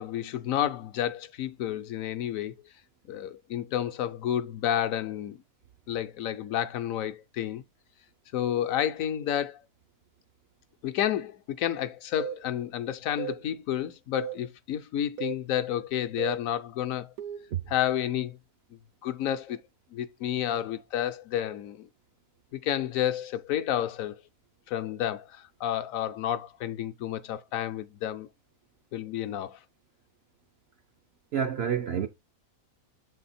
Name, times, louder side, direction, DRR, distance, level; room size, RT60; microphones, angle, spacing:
voice 1, 0.0-2.5 3.1-5.4 5.9-7.6 8.3-9.6 10.8-17.1 17.7-18.4 19.0-19.6 19.9-21.9 22.5-24.2 24.7-28.3 28.9-29.6, left 11 dB, 70° left, 1.0 m, -30 dB
sound 1, 12.2-12.4 13.2-13.4 14.2-14.4 15.2-15.4 16.2-16.4 17.2-17.5, right 10 dB, 85° right, 1.4 m, -35 dB
voice 2, 31.3-32.1, right 8 dB, 60° right, 0.7 m, -28 dB
7.6 x 4.2 x 4.1 m
omnidirectional pair, 1.6 m